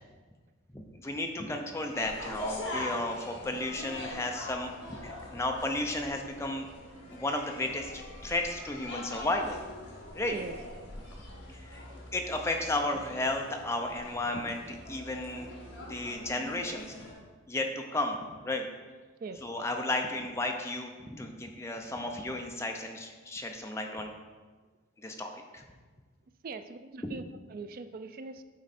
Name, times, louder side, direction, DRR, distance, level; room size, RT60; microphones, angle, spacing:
voice 1, 0.7-6.7 7.1-9.6 10.1-10.4 11.5-11.8 12.1-15.5 15.9-16.9 17.5-18.2 18.4-18.7 19.4-24.1 25.0-25.6 27.0-27.1, left 2 dB, 15° left, 3 dB, 0.5 m, -33 dB
sound 1, 1.9-17.1, left 1 dB, 60° left, 1.8 m, -43 dB
voice 2, 10.3-10.9 19.2-19.4 26.4-27.2 27.5-28.4, right 3 dB, 45° right, 10 dB, 0.3 m, -41 dB
9.4 x 3.9 x 4.2 m, 1.4 s
head